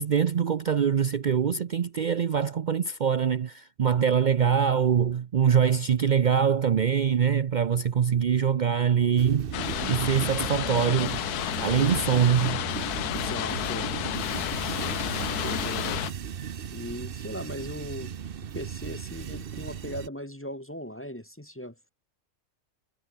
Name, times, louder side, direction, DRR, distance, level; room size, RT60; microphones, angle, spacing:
voice 1, 0.0-11.2 11.6-12.6, right 7 dB, 70° right, 0.4 m, -24 dB
sound 1, 9.2-20.1, right 8 dB, 45° right, 0.8 m, -36 dB
sound 2, 9.5-16.1, left 13 dB, 75° left, 1.2 m, -31 dB
voice 2, 13.1-13.9 14.6-16.0 16.7-18.1 18.5-21.9, equal, 10° left, 1.1 m, -38 dB
omnidirectional pair, 1.7 m